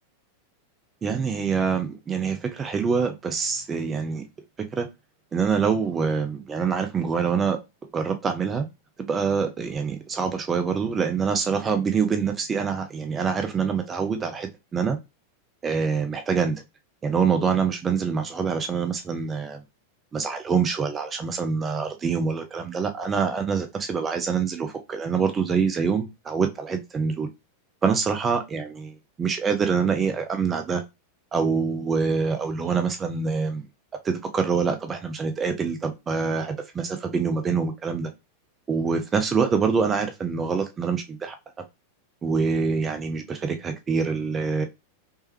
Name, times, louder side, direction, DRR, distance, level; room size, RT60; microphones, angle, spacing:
voice 1, 1.0-4.2 4.7-4.9 5.3-7.6 7.9-8.7 9.0-15.0 15.6-16.6 17.0-19.6 20.1-27.3 27.8-28.7 29.2-30.8 31.3-33.6 34.0-38.1 38.7-41.4 42.2-44.7, right 5 dB, 20° right, 0.5 m, -25 dB
3.3 x 3.1 x 3.0 m
figure-of-eight pair, 90°, 0 cm